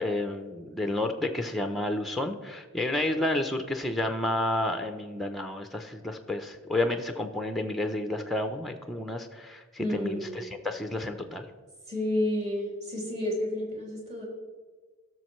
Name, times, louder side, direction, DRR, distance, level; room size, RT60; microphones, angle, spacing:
voice 1, 0.0-11.5, left 1 dB, ahead, 6 dB, 0.5 m, -30 dB
voice 2, 9.8-10.3 11.9-14.3, left 1 dB, 30° right, -3 dB, 3.0 m, -30 dB
16.5 x 6.4 x 3.1 m, 1.4 s
head